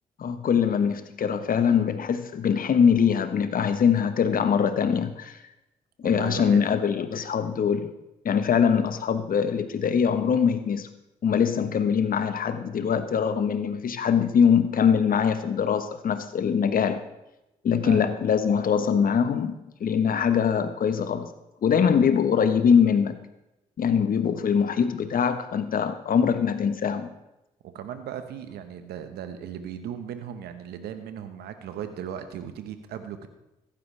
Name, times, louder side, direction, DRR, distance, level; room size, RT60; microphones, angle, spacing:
voice 1, 0.2-5.4 6.0-7.9 8.2-10.9 11.2-17.0 17.6-21.3 21.6-23.2 23.8-27.1, left 7 dB, 60° left, 10 dB, 1.2 m, -23 dB
voice 2, 6.0-6.7 17.8-18.1 27.6-33.3, right 9 dB, 75° right, 9 dB, 1.2 m, -37 dB
15.0 x 12.0 x 3.4 m, 0.94 s
hypercardioid pair, 40°, 17 cm